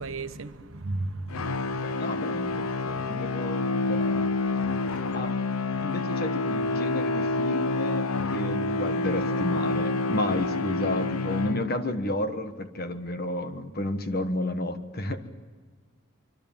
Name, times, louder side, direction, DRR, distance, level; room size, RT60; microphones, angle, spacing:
voice 1, 0.0-1.7 4.7-5.0, right 2 dB, 70° right, 1.2 m, -35 dB
sound 1, 1.3-12.1, left 3 dB, 85° left, 0.7 m, -28 dB
voice 2, 1.8-4.3 5.1-5.3 5.8-15.3, left 1 dB, 45° left, 1.5 m, -32 dB
25.5 x 24.5 x 7.5 m
head